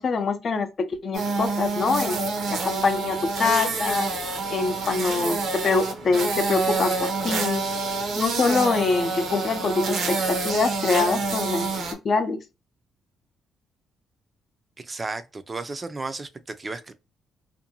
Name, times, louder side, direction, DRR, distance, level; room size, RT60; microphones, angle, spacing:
voice 1, 0.0-2.2 2.5-4.1 4.5-7.6 8.2-12.4, left 4 dB, 50° left, 0.5 m, -24 dB
sound 1, 1.1-11.9, right 3 dB, 70° right, 0.7 m, -27 dB
voice 2, 14.8-16.9, right 3 dB, 25° right, 0.4 m, -34 dB
2.6 x 2.2 x 2.8 m
cardioid pair, 90°, 0 cm